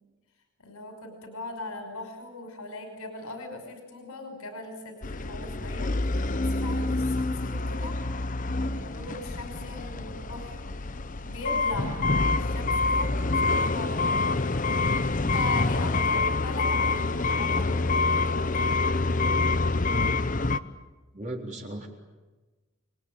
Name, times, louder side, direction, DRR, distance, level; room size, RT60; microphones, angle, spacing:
voice 1, 0.6-8.0 8.6-10.8 11.2-14.0 15.2-18.8, left 2 dB, 90° left, 5 dB, 5.7 m, -39 dB
sound 1, 5.0-20.6, left 3 dB, 35° left, 0.8 m, -26 dB
voice 2, 21.1-21.9, right 1 dB, 35° right, 0 dB, 4.0 m, -36 dB
29.5 x 21.5 x 9.2 m, 1.2 s
head